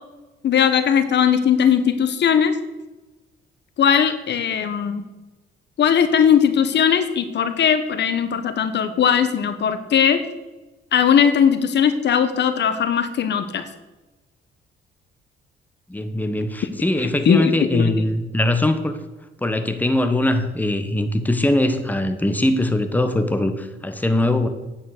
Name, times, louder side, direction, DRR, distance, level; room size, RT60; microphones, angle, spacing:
voice 1, 0.4-2.6 3.8-5.0 5.8-10.2 10.9-13.7 17.2-17.9, left 8 dB, 60° left, 11 dB, 1.1 m, -18 dB
voice 2, 15.9-19.0 19.4-24.5, left 1 dB, 10° left, 8 dB, 1.1 m, -21 dB
9.2 x 8.7 x 6.5 m, 1.1 s
cardioid pair, 90°, 20 cm